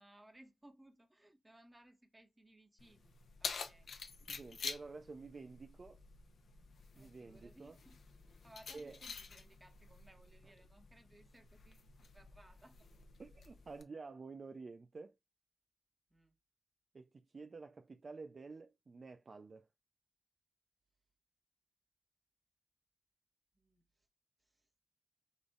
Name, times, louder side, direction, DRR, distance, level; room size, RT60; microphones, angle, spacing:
voice 1, 0.0-3.1 3.4-3.9 6.9-8.0 8.4-11.8 12.1-12.8 16.1-16.3 23.6-23.8, right 1 dB, 20° right, 1.5 m, -62 dB
Keys jangling, 2.8-13.8, left 5 dB, 85° left, 0.8 m, -49 dB
voice 2, 4.3-6.0 7.0-7.8 8.7-9.0 10.4-10.5 13.2-15.2 16.9-19.7, right 4 dB, 55° right, 0.5 m, -51 dB
5.2 x 4.0 x 2.4 m
cardioid pair, 70°, 0 cm